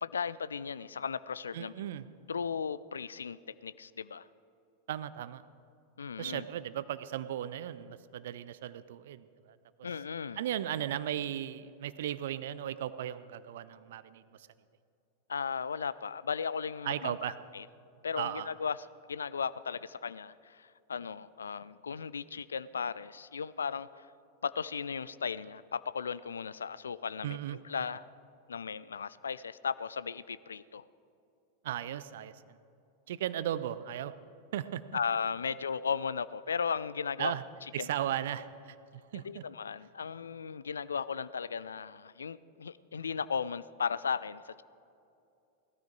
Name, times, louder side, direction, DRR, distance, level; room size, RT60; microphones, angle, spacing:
voice 1, 0.0-1.7 2.3-4.3 6.0-6.5 9.8-10.4 15.3-17.2 17.5-17.7 18.0-18.8 19.1-24.1 24.4-27.4 27.6-28.0 28.5-30.8 34.9-37.3 37.8-37.9 39.2-44.6, left 6 dB, 70° left, 17 dB, 0.4 m, -36 dB
voice 2, 1.5-2.1 4.9-5.4 6.2-9.6 10.4-14.5 16.8-17.3 18.2-18.5 27.2-27.6 31.6-32.3 33.1-34.1 34.5-34.8 37.2-37.4 37.7-38.5 38.9-39.4, right 11 dB, 55° right, 15 dB, 0.5 m, -36 dB
17.5 x 13.0 x 4.7 m, 2.7 s
figure-of-eight pair, 90°, 0 cm